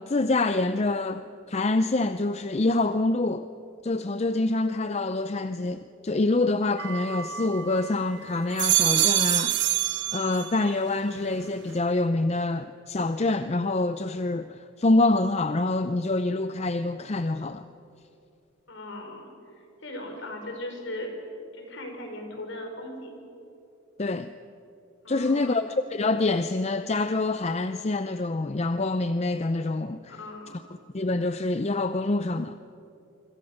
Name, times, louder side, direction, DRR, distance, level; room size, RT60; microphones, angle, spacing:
voice 1, 0.0-3.5 3.8-9.6 10.1-17.6 24.0-24.3 25.1-30.1 30.9-32.6, left 2 dB, 30° left, 0.5 m, -26 dB
sound 1, 6.8-7.9 8.4-10.8 11.2-11.8, right 14 dB, 55° right, 1.0 m, -26 dB
voice 2, 18.7-21.1 21.5-23.2 25.0-25.6 30.1-30.6, left 1 dB, 60° left, 5.0 m, -38 dB
25.5 x 25.5 x 6.5 m
head